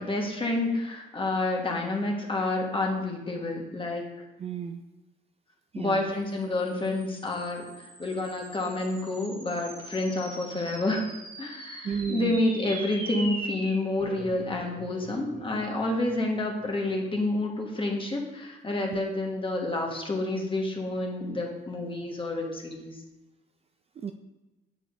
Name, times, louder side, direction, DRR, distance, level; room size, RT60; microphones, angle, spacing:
voice 1, 0.0-4.3 5.7-11.1 11.4-22.9, left 2 dB, 25° left, 0 dB, 1.3 m, -29 dB
voice 2, 4.4-4.8 5.7-6.1 11.8-12.4 18.9-19.0 24.0-24.1, right 7 dB, 30° right, 5 dB, 0.3 m, -33 dB
sound 1, 6.5-17.2, right 1 dB, 50° right, 1.6 m, -43 dB
6.9 x 6.2 x 2.6 m, 1.1 s
cardioid pair, 90°, 20 cm